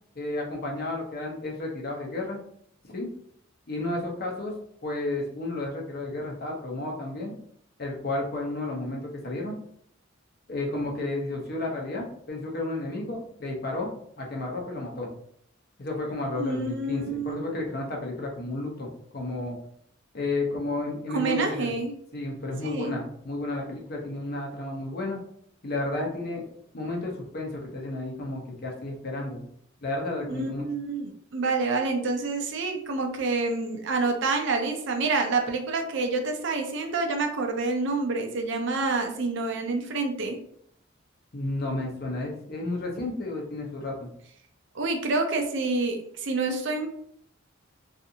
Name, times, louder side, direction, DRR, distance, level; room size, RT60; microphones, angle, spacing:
voice 1, 0.1-2.4 2.9-3.1 3.7-4.6 4.8-7.4 7.8-9.5 10.5-13.9 14.2-15.1 15.8-19.6 20.1-21.7 22.1-25.2 25.6-26.4 26.7-29.5 29.8-30.6 41.3-44.1, left 2 dB, 50° left, 0 dB, 0.7 m, -32 dB
voice 2, 16.4-17.6 21.1-22.0 22.6-23.0 30.3-40.4 44.7-46.9, right 3 dB, 65° right, 4 dB, 0.5 m, -28 dB
2.5 x 2.5 x 2.7 m, 0.67 s
head